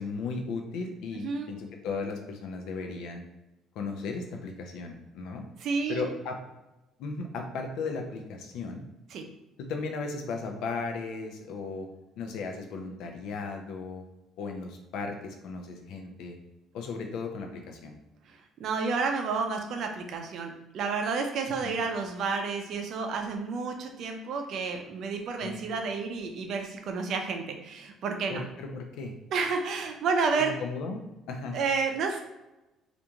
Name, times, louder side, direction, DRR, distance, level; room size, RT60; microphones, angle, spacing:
voice 1, 0.0-3.3 3.7-5.5 5.9-6.4 7.0-8.8 9.6-11.9 12.2-14.0 14.4-16.4 16.7-17.9 21.6-21.7 25.4-25.6 28.3-29.1 30.4-31.0 31.3-31.6, left 4 dB, 75° left, 4 dB, 0.4 m, -36 dB
voice 2, 1.1-1.5 5.6-6.1 9.1-9.2 18.3-28.4 29.3-30.5 31.5-32.2, right 4 dB, 60° right, 4 dB, 0.4 m, -30 dB
2.9 x 2.5 x 2.3 m, 0.98 s
cardioid pair, 105°, 0 cm